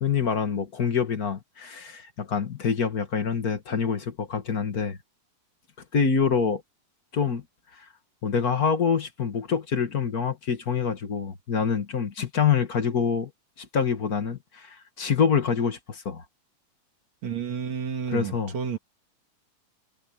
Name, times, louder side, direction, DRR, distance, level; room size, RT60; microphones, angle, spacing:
voice 1, 0.0-5.0 5.9-6.6 7.1-7.4 8.2-13.3 13.6-16.2 18.1-18.6, left 6 dB, 40° left, 1.6 m, -26 dB
voice 2, 17.2-18.8, right 6 dB, 60° right, 3.1 m, -31 dB
omnidirectional pair, 3.6 m